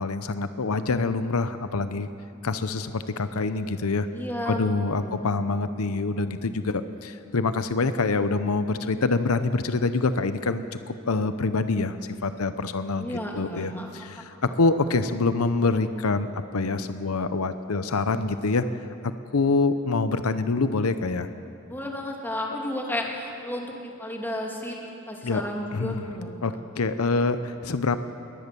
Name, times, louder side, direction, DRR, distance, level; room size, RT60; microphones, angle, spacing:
voice 1, 0.0-2.1 2.4-4.1 4.5-16.3 16.5-18.6 19.3-21.3 25.2-25.4 25.7-28.0, left 3 dB, 85° left, 11 dB, 0.8 m, -26 dB
voice 2, 4.1-5.2 13.0-13.9 14.3-14.5 21.7-24.8 25.1-26.6, left 1 dB, 10° left, -1 dB, 2.7 m, -33 dB
21.5 x 19.5 x 6.9 m, 2.8 s
head